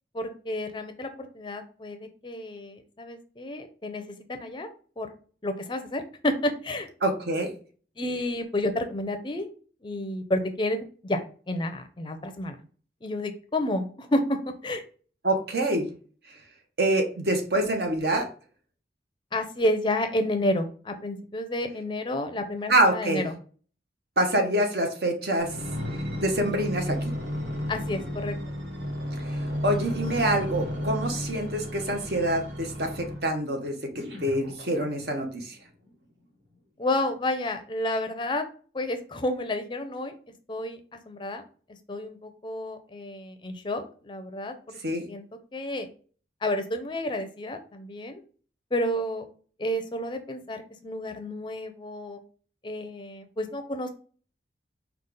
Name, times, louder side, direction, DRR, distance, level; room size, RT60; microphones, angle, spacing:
voice 1, 0.1-4.0 4.3-4.7 5.0-5.1 5.4-6.9 8.0-9.5 9.8-12.6 13.0-14.4 14.6-14.8 19.3-23.4 27.7-28.6 36.8-38.4 38.7-40.1 40.5-41.4 41.7-44.6 45.1-45.3 45.5-45.9 46.4-48.2 48.7-49.2 49.6-52.2 52.6-53.9, left 1 dB, 25° left, 7 dB, 0.5 m, -30 dB
voice 2, 7.0-7.5 15.2-15.9 16.8-18.3 22.7-23.3 24.2-25.5 26.2-27.1 29.6-35.6 44.8-45.0, right 1 dB, 65° right, 4 dB, 1.0 m, -26 dB
sound 1, 25.4-33.4 34.0-35.2 35.8-35.9, equal, 90° right, 1.4 m, -33 dB
5.0 x 2.4 x 3.8 m, 0.41 s
head